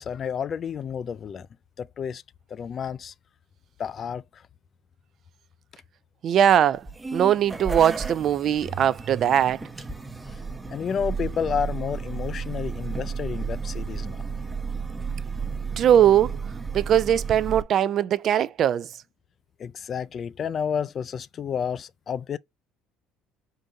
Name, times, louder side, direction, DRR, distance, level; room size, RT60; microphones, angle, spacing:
voice 1, 0.0-1.5 1.8-2.2 2.5-3.1 3.8-4.4 10.7-14.2 19.6-22.4, left 7 dB, 45° left, 0.3 m, -30 dB
voice 2, 6.2-6.8 7.1-9.6 15.8-16.3 16.7-18.9, right 10 dB, 55° right, 0.4 m, -20 dB
sound 1, 6.7-17.6, right 5 dB, 15° right, 0.7 m, -33 dB
3.9 x 2.7 x 4.5 m
supercardioid pair, 95°, 0 cm